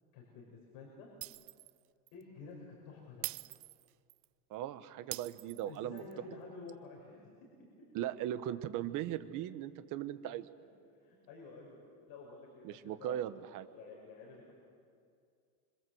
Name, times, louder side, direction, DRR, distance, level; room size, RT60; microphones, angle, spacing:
voice 1, 0.1-1.1 2.1-3.3 5.7-7.2 10.9-11.8 12.1-14.6, left 4 dB, 50° left, -2 dB, 5.6 m, -51 dB
Shatter, 1.2-1.8 2.1-2.2 3.2-4.2 5.1-6.1, right 24 dB, 70° right, 0.6 m, -44 dB
voice 2, 4.5-6.0 7.9-10.5 12.6-13.7, right 12 dB, 40° right, 12 dB, 1.3 m, -38 dB
27.0 x 25.5 x 7.9 m, 2.3 s
cardioid pair, 160°, 46 cm